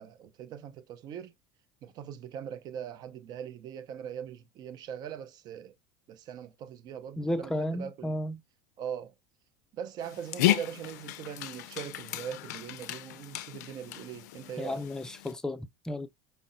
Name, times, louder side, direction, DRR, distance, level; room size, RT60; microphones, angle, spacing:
voice 1, 0.0-1.3 1.8-5.7 6.1-8.2 8.8-9.1 9.7-14.9, right 8 dB, 45° right, 0.6 m, -41 dB
voice 2, 7.2-8.4 14.6-16.1, left 1 dB, 5° left, 0.4 m, -33 dB
Dog, 10.0-15.3, left 14 dB, 75° left, 0.4 m, -34 dB
5.2 x 2.0 x 2.5 m
supercardioid pair, 100°, 9 cm